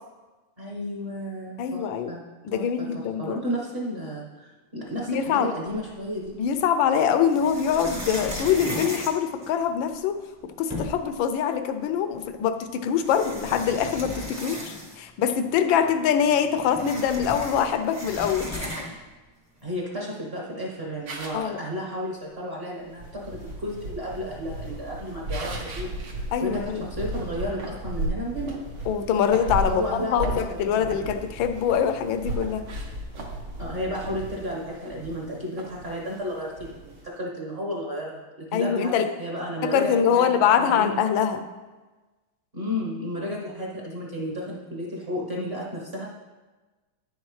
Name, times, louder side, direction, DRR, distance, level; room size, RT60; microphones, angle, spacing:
voice 1, 0.6-2.2 2.5-6.4 19.6-25.9 26.4-28.5 29.7-31.1 33.6-38.2 38.5-38.9 39.2-41.0 42.5-46.1, equal, 35° right, -3 dB, 1.2 m, -33 dB
voice 2, 1.6-2.1 2.4-3.4 5.1-5.5 6.4-10.2 10.6-18.5 21.3-21.6 26.3-26.8 28.9-32.7 38.5-39.1 39.6-41.4, left 8 dB, 75° left, 9 dB, 1.3 m, -24 dB
sound 1, 5.7-6.4 7.2-10.0 10.4-10.5 10.7-11.2 12.2-12.3 12.9-15.2 15.5-15.6 15.9-19.1, left 1 dB, 15° right, 0.7 m, -36 dB
sound 2, 21.1-21.5 23.9-26.2 26.6-26.7 27.3-27.8 28.5-28.7 29.1-29.9 30.1-30.6 30.9-31.9 32.3-33.6 33.9-34.1 34.4-34.5 34.7-35.2 35.6-35.8, right 2 dB, 60° right, 1.6 m, -40 dB
sound 3, 22.8-37.0, right 1 dB, 75° right, 2.8 m, -35 dB
9.7 x 7.3 x 3.2 m, 1.2 s
omnidirectional pair, 2.4 m